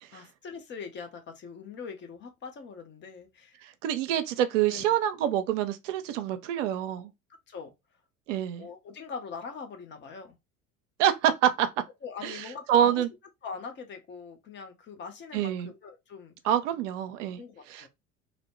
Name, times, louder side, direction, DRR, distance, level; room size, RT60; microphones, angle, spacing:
voice 1, 0.1-3.6 4.7-4.9 7.5-7.7 8.6-10.4 12.0-13.0 13.4-16.4 17.4-17.9, left 5 dB, 25° left, 0.6 m, -42 dB
voice 2, 3.6-7.1 8.3-8.7 11.0-11.7 12.2-13.1 15.3-15.7 16.4-17.4 17.7-17.9, right 10 dB, 60° right, 0.5 m, -26 dB
2.6 x 2.1 x 3.0 m
figure-of-eight pair, 75°, 43 cm